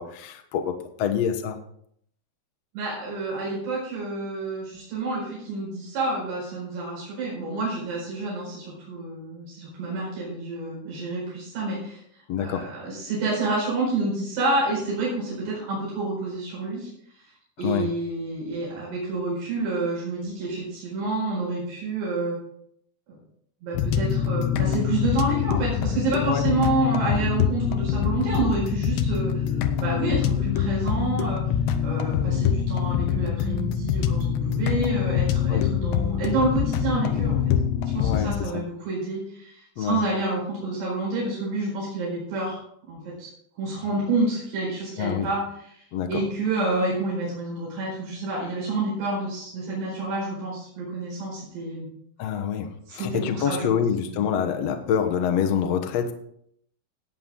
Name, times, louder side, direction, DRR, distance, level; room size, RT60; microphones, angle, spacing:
voice 1, 0.0-1.6 12.3-12.7 17.6-17.9 26.2-26.4 35.4-35.6 38.0-38.6 39.8-40.0 45.0-45.3 45.9-46.2 52.2-56.1, left 8 dB, 70° left, 6 dB, 1.5 m, -26 dB
voice 2, 2.7-12.0 12.4-16.9 17.6-22.4 23.6-31.4 31.8-37.4 37.8-42.6 42.9-43.3 43.6-45.4 45.8-51.9 52.9-53.7 54.1-54.2, right 2 dB, 80° right, -5 dB, 6.8 m, -28 dB
sound 1, 23.7-38.4, left 8 dB, 90° left, 3.1 m, -25 dB
16.5 x 9.2 x 3.8 m, 0.69 s
omnidirectional pair, 4.7 m